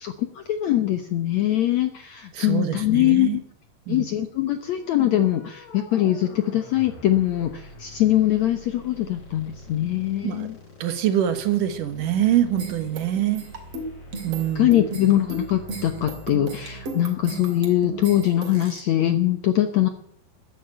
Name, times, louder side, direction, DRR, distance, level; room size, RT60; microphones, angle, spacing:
voice 1, 0.0-3.4 3.9-10.6 14.6-19.9, left 13 dB, 70° left, 8 dB, 1.7 m, -22 dB
voice 2, 2.3-3.4 3.9-4.0 10.2-10.5 10.8-13.4 14.2-14.7, right 11 dB, 65° right, 10 dB, 2.5 m, -24 dB
sound 1, 4.6-18.5, left 1 dB, 40° left, 6.6 m, -45 dB
sound 2, 12.6-18.8, right 3 dB, 45° right, 3.5 m, -35 dB
13.5 x 10.0 x 9.1 m, 0.67 s
omnidirectional pair, 4.4 m